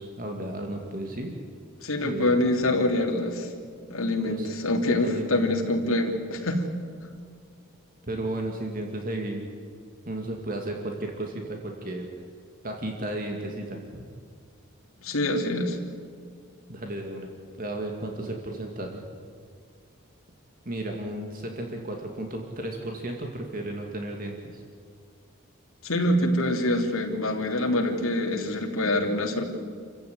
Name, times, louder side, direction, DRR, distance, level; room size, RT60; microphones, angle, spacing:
voice 1, 0.0-1.4 2.0-2.3 4.2-4.5 4.9-5.7 8.1-9.5 10.1-12.1 12.6-14.1 16.7-17.3 17.6-19.0 20.7-24.6, right 1 dB, 40° right, 2 dB, 2.4 m, -34 dB
voice 2, 1.8-3.5 3.9-6.6 15.0-15.8 25.8-29.4, left 1 dB, 70° left, 1 dB, 3.3 m, -25 dB
28.0 x 15.5 x 9.6 m, 2.1 s
head